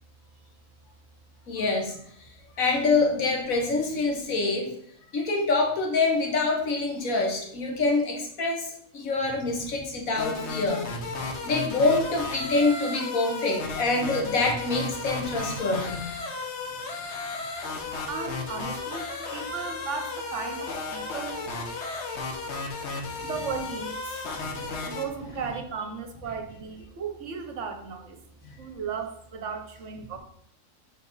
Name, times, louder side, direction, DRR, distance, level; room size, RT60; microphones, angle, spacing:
voice 1, 1.5-2.0 2.6-4.7 5.1-10.8 11.1-16.1 23.2-23.3 24.3-24.7 28.4-28.5, left 3 dB, 80° left, 2 dB, 1.7 m, -26 dB
sound 1, 10.1-25.1, left 3 dB, 60° left, 1.2 m, -34 dB
voice 2, 18.1-21.4 23.2-24.3 24.6-28.2 28.6-30.2, right 5 dB, 65° right, 7 dB, 1.1 m, -36 dB
6.0 x 4.0 x 5.3 m, 0.67 s
omnidirectional pair, 1.4 m